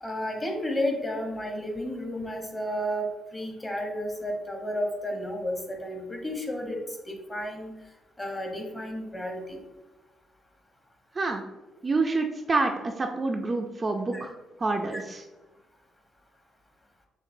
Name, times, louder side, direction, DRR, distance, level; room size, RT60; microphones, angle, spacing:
voice 1, 0.0-6.8 7.1-7.7 8.2-9.6 14.1-14.2 14.9-15.0, equal, 20° left, 2 dB, 0.9 m, -32 dB
voice 2, 11.8-14.3 14.6-15.2, right 3 dB, 30° right, 3 dB, 0.4 m, -27 dB
6.5 x 2.3 x 2.6 m, 1.1 s
cardioid pair, 90°, 0 cm